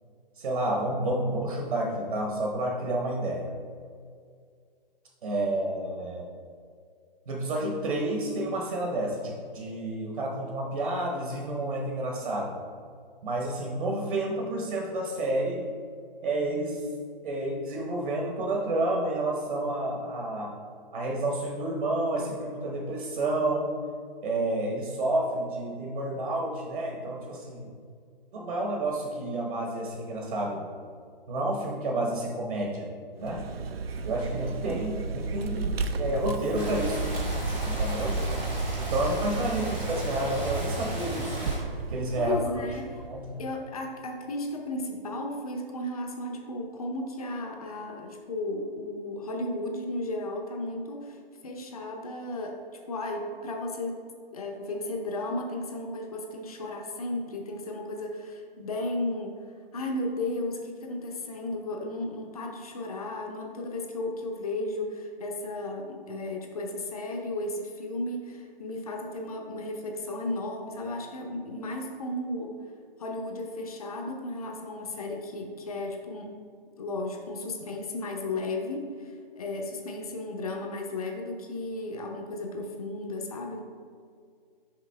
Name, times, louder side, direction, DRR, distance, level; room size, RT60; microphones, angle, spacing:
voice 1, 0.4-3.5 5.2-6.3 7.3-12.6 13.2-15.7 16.2-16.8 17.2-20.5 20.9-23.7 24.2-27.7 28.3-30.7 31.3-32.9 33.2-33.4 34.0-37.0 37.6-38.4 38.8-41.5 41.9-42.4 43.1-43.3, right 1 dB, 60° right, -1 dB, 1.1 m, -30 dB
Vehicle, 33.2-43.5, right 3 dB, 85° right, 0.6 m, -32 dB
sound 1, 36.5-41.6, right 1 dB, 10° right, 0.5 m, -37 dB
voice 2, 42.2-43.0 43.4-52.6 52.9-54.0 54.3-59.4 59.7-72.6 73.0-76.3 76.8-83.6, left 2 dB, 40° left, 2 dB, 0.7 m, -34 dB
5.8 x 5.1 x 3.3 m, 2.1 s
hypercardioid pair, 165°, 29 cm